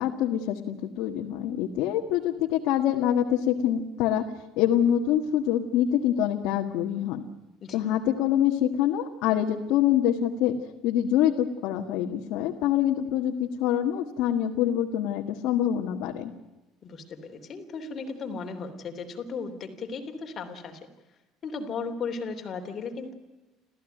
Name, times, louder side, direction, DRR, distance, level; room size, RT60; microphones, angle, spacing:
voice 1, 0.0-4.2 4.6-7.2 7.7-10.5 10.8-16.3, left 10 dB, 70° left, 1 dB, 1.8 m, -25 dB
voice 2, 16.8-20.8 21.4-23.1, left 4 dB, 35° left, 5 dB, 3.4 m, -36 dB
29.0 x 15.0 x 9.3 m, 1.1 s
cardioid pair, 155°, 0 cm